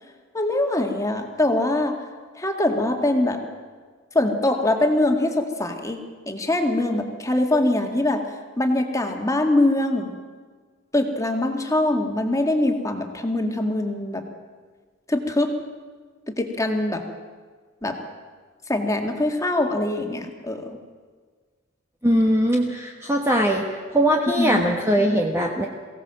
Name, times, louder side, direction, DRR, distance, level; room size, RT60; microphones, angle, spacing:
voice 1, 0.3-2.0 2.4-3.4 4.1-6.0 6.3-8.2 8.6-10.1 10.9-14.2 15.1-15.5 16.3-17.0 17.8-18.0 18.7-20.8 24.4-24.6, left 1 dB, 15° left, 4 dB, 2.1 m, -23 dB
voice 2, 22.0-23.6 23.9-25.7, equal, 15° right, 0 dB, 1.4 m, -20 dB
23.0 x 17.0 x 7.6 m, 1.5 s
head